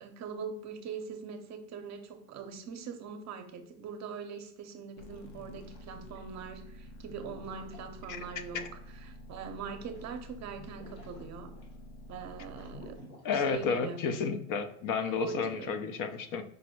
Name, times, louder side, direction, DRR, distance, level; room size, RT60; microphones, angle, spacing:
voice 1, 0.0-11.5 12.1-14.0 15.0-15.8, right 6 dB, 40° right, 6 dB, 0.7 m, -42 dB
sound 1, 5.0-13.0, left 1 dB, 70° left, 0.9 m, -49 dB
sound 2, 5.1-6.4 6.8-13.8, left 3 dB, 85° left, 1.5 m, -54 dB
voice 2, 13.2-16.4, left 5 dB, 45° left, 9 dB, 0.6 m, -31 dB
5.0 x 2.0 x 4.4 m, 0.73 s
supercardioid pair, 95°, 43 cm